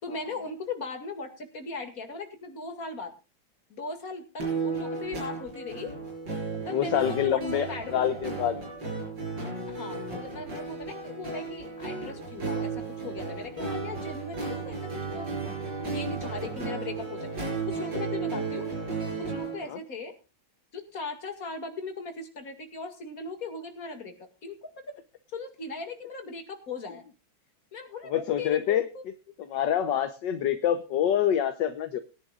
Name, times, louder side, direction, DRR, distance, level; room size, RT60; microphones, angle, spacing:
voice 1, 0.0-3.1 3.7-5.9 6.7-8.1 9.6-15.3 15.9-18.7 18.9-20.2 20.7-24.7 25.3-27.0 27.7-29.0, left 3 dB, 45° left, 5 dB, 2.6 m, -38 dB
sound 1, 4.4-19.6, right 4 dB, 65° right, 6.2 m, -34 dB
voice 2, 6.7-8.6 19.7-19.8 28.1-28.9 29.5-32.0, left 10 dB, 70° left, 9 dB, 1.5 m, -26 dB
21.0 x 10.5 x 2.4 m, 0.31 s
omnidirectional pair, 2.1 m